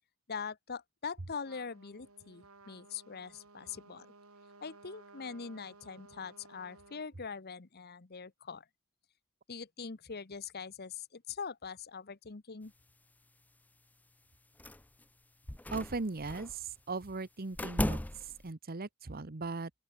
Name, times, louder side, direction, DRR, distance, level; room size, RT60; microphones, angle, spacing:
voice 1, 0.3-4.1 4.6-8.6 9.5-12.7, left 5 dB, 45° left, 1.0 m, -43 dB
Trumpet, 1.4-7.1, right 3 dB, 80° right, 3.8 m, -57 dB
sound 1, 14.6-15.0 15.5-16.6 17.5-18.5, left 1 dB, 5° left, 0.5 m, -36 dB
voice 2, 15.7-19.7, right 3 dB, 45° right, 1.0 m, -38 dB
open air
head